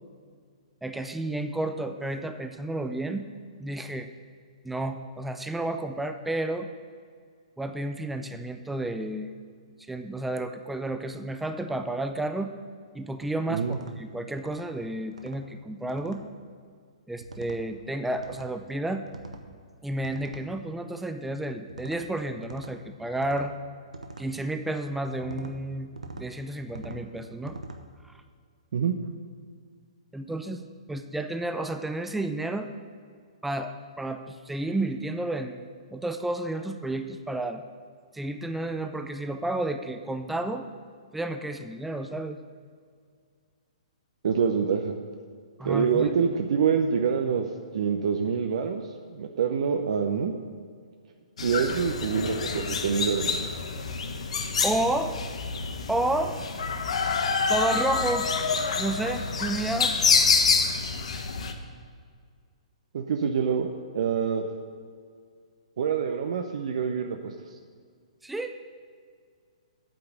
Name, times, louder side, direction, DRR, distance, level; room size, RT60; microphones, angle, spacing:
voice 1, 0.8-3.3 3.6-4.1 4.6-6.7 7.6-9.3 9.9-12.5 12.9-16.2 17.1-19.1 19.8-23.5 24.2-27.6 30.1-30.6 30.9-32.7 33.4-35.6 35.9-37.6 38.1-40.7 41.1-42.4 45.6-46.1 54.6-55.1 55.9-56.3 57.5-58.3 58.7-60.0 68.2-68.6, right 1 dB, 5° right, 7 dB, 0.5 m, -31 dB
sound 1, 13.7-13.9 14.4-14.7 15.1-15.4 15.9-16.2 17.2-17.6 18.1-18.5 19.1-19.5 20.0-20.5 21.7-22.0 22.4-22.7 23.2-23.5 23.9-24.3 25.2-25.5 26.0-26.3 26.7-27.0 27.5-27.8, right 3 dB, 85° right, 1.0 m, -42 dB
voice 2, 44.2-44.9 45.6-47.5 47.7-48.8 49.1-50.3 51.4-53.4 62.9-63.7 63.9-64.4 65.8-67.3, right 6 dB, 60° right, 4 dB, 0.7 m, -26 dB
sound 2, 51.4-61.5, left 5 dB, 65° left, 1.0 m, -27 dB
8.8 x 5.9 x 8.1 m, 2.1 s
figure-of-eight pair, 125°, 4 cm